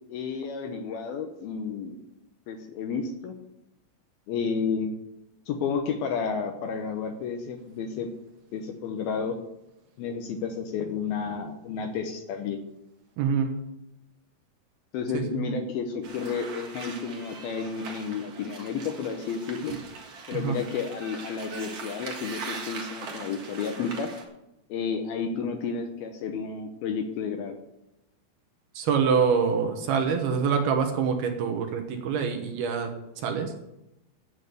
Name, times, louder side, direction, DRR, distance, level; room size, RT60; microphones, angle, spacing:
voice 1, 0.1-2.0 2.5-3.3 4.3-4.9 5.5-8.1 8.5-9.4 10.0-12.6 14.9-19.7 20.3-24.1 24.7-27.6, left 5 dB, 75° left, 5 dB, 2.5 m, -31 dB
voice 2, 13.2-13.5 15.1-15.5 20.3-20.6 28.8-32.9 33.2-33.5, right 6 dB, 70° right, 5 dB, 2.8 m, -25 dB
sound 1, 16.0-24.2, right 4 dB, 50° right, 2.1 m, -41 dB
9.5 x 8.4 x 8.3 m, 0.89 s
omnidirectional pair, 5.1 m